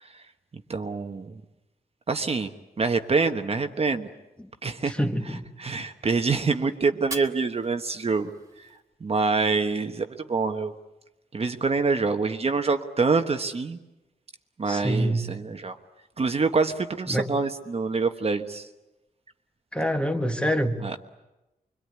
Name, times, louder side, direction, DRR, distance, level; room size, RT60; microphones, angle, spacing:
voice 1, 0.7-1.4 2.1-2.5 2.8-4.1 4.6-5.0 5.3-8.3 9.0-10.7 11.3-13.8 14.6-15.7 16.2-18.7 20.8-21.0, right 4 dB, 40° right, 6 dB, 1.2 m, -26 dB
voice 2, 4.9-5.4 14.7-15.2 17.1-17.3 19.7-20.8, equal, 5° left, 5 dB, 1.6 m, -26 dB
Fire, 6.9-9.0, right 2 dB, 20° right, 2.4 m, -42 dB
26.0 x 24.0 x 9.5 m, 0.99 s
wide cardioid pair, 180°, 16 cm